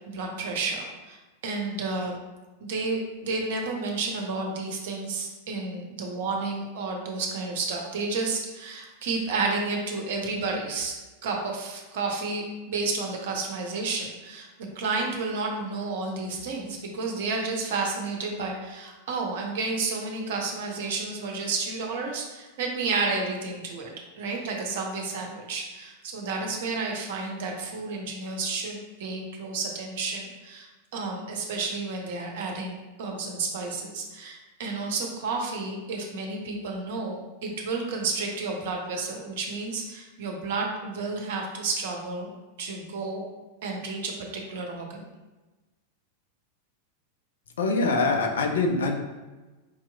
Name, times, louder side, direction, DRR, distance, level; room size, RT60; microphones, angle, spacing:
voice 1, 0.1-2.2 2.6-10.9 11.2-42.3 42.6-43.2 43.6-45.0, right 3 dB, 55° right, 1 dB, 0.7 m, -31 dB
voice 2, 47.6-49.0, left 3 dB, 65° left, 3 dB, 0.5 m, -24 dB
4.7 x 2.9 x 2.2 m, 1.2 s
figure-of-eight pair, 90°, 0 cm